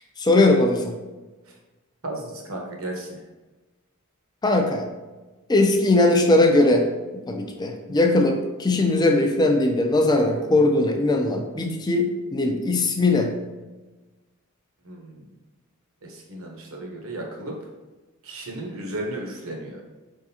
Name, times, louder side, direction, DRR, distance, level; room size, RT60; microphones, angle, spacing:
voice 1, 0.2-0.9 4.4-4.9 5.5-6.9 7.3-13.3, left 2 dB, 20° left, 4 dB, 0.4 m, -20 dB
voice 2, 2.0-3.2 14.8-15.2 16.0-17.6 18.2-19.8, right 1 dB, 70° right, 0 dB, 1.0 m, -34 dB
4.9 x 3.6 x 2.8 m, 1.2 s
head